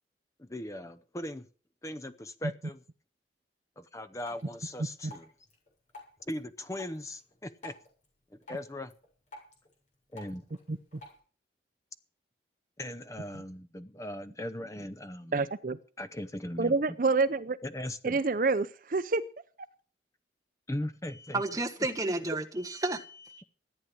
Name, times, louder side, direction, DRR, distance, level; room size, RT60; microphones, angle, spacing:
voice 1, 0.4-1.5 1.8-2.8 3.8-5.3 6.3-7.7 8.3-8.9 10.1-10.4 12.8-15.4 16.0-17.0 17.6-18.2 20.7-21.4, left 1 dB, 20° left, 0.7 m, -39 dB
Drip, 4.2-11.2, left 2 dB, 45° left, 7.4 m, -53 dB
voice 2, 15.3-15.8 16.6-17.6 18.0-19.2, right 3 dB, 50° right, 0.6 m, -27 dB
voice 3, 21.3-23.4, right 2 dB, 20° right, 1.4 m, -32 dB
14.0 x 9.7 x 7.1 m
head